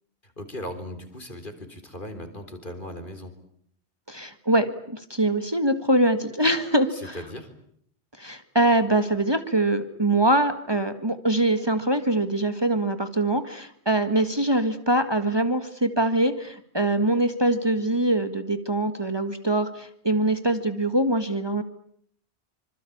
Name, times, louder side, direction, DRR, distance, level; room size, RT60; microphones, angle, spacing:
voice 1, 0.2-3.3 6.9-7.5, left 1 dB, 50° left, 9 dB, 4.1 m, -38 dB
voice 2, 4.1-7.2 8.2-21.6, right 1 dB, 25° right, 9 dB, 1.7 m, -23 dB
26.0 x 26.0 x 8.6 m, 0.68 s
omnidirectional pair, 1.1 m